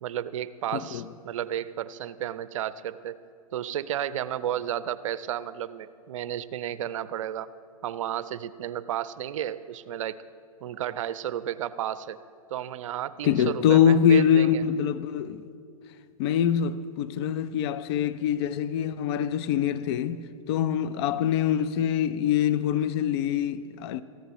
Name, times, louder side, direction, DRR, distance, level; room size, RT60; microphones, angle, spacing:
voice 1, 0.0-3.2 3.5-7.5 7.8-10.2 10.6-12.2 12.5-14.6, right 11 dB, 60° right, 0.5 m, -32 dB
voice 2, 0.7-1.0 13.2-15.5 16.2-24.0, left 9 dB, 45° left, 0.5 m, -24 dB
18.5 x 14.5 x 3.1 m
hypercardioid pair, 115°, 19 cm